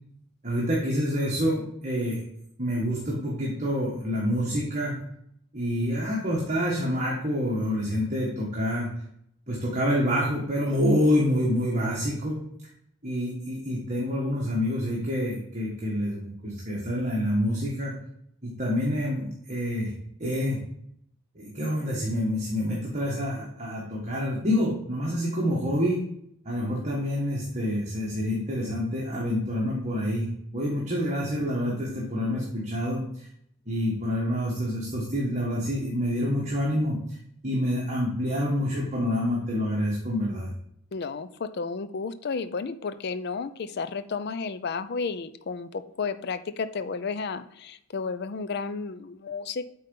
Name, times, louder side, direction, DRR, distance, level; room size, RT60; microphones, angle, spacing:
voice 1, 0.4-2.2 2.6-5.0 5.5-8.9 9.5-12.4 13.0-17.9 18.4-19.9 20.2-20.6 21.3-26.0 26.4-30.3 30.5-33.3 33.7-37.0 37.4-40.5, equal, 35° right, -4 dB, 1.5 m, -27 dB
voice 2, 40.9-49.6, left 4 dB, 50° left, 13 dB, 0.4 m, -32 dB
8.3 x 4.0 x 5.3 m, 0.72 s
head